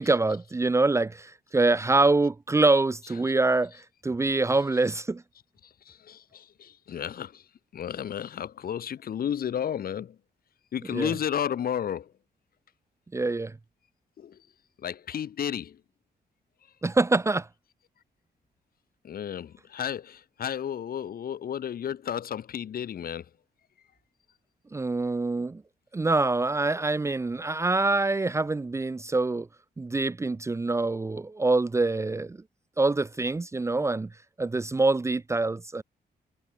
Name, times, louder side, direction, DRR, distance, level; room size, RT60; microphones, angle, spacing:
voice 1, 0.0-5.2 10.9-11.1 13.1-13.6 16.8-17.5 24.7-25.6 25.9-29.5 29.8-32.4 32.8-34.1 34.4-35.8, right 3 dB, 15° right, 0.8 m, -25 dB
voice 2, 5.6-7.5 7.7-10.2 10.7-12.1 14.2-14.4 14.8-15.8 19.0-23.3, left 9 dB, 60° left, 2.7 m, -32 dB
wide cardioid pair, 160°, 17 cm